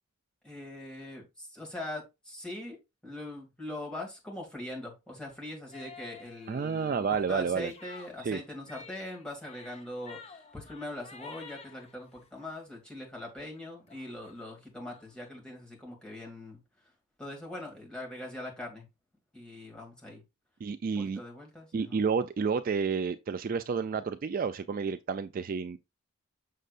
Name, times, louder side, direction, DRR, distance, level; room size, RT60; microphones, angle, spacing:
voice 1, 0.4-2.8 3.0-16.6 17.2-18.9 19.3-20.2 20.9-22.0, left 1 dB, 5° left, 2.2 m, -42 dB
sound 1, 5.7-12.5 13.0-13.3 13.6-13.7 13.9-15.3, left 5 dB, 30° left, 0.7 m, -51 dB
voice 2, 6.5-7.7 8.2-8.4 20.6-21.2 21.7-25.8, right 5 dB, 40° right, 0.3 m, -30 dB
6.5 x 6.4 x 2.5 m
head